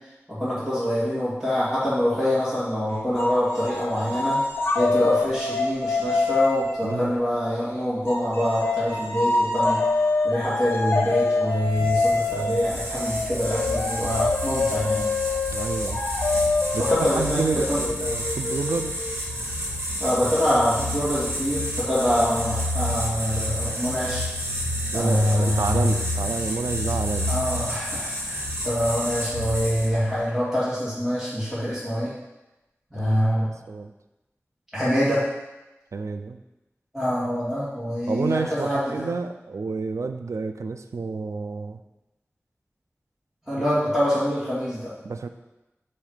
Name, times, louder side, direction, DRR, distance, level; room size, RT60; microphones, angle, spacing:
voice 1, 0.3-4.4 4.7-9.8 10.2-15.0 16.8-17.8 20.0-24.3 24.9-26.0 27.3-32.1 32.9-33.6 34.7-35.2 36.9-39.1 43.5-44.9, equal, ahead, -12 dB, 2.4 m, -25 dB
sound 1, 3.2-7.5 8.1-19.4, left 3 dB, 50° left, 1.0 m, -26 dB
voice 2, 6.8-7.1 15.5-16.0 16.7-18.9 24.9-27.3 33.0-33.9 35.9-36.4 38.1-41.8 45.0-45.3, right 4 dB, 90° right, 7 dB, 0.4 m, -29 dB
sound 2, 11.7-30.1, equal, 65° right, 2.3 m, -30 dB
7.1 x 3.2 x 5.0 m, 1.0 s
wide cardioid pair, 55°, 5 cm